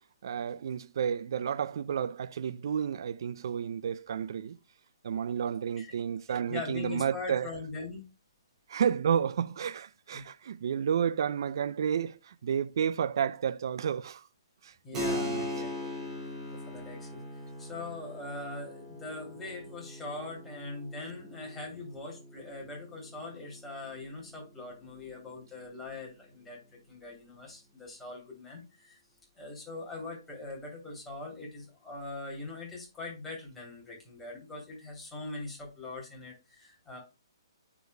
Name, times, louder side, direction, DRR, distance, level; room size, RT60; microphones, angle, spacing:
voice 1, 0.2-4.6 5.0-7.5 8.7-14.2 14.6-15.4, right 8 dB, 60° right, 0.4 m, -31 dB
voice 2, 6.3-8.1 10.1-10.2 14.8-16.1 16.5-17.2 17.6-29.0 29.3-37.0, left 3 dB, 10° left, 3.1 m, -42 dB
Keyboard (musical), 14.9-25.2, left 1 dB, 20° right, 2.5 m, -40 dB
9.3 x 5.0 x 2.2 m
figure-of-eight pair, 130°, 3 cm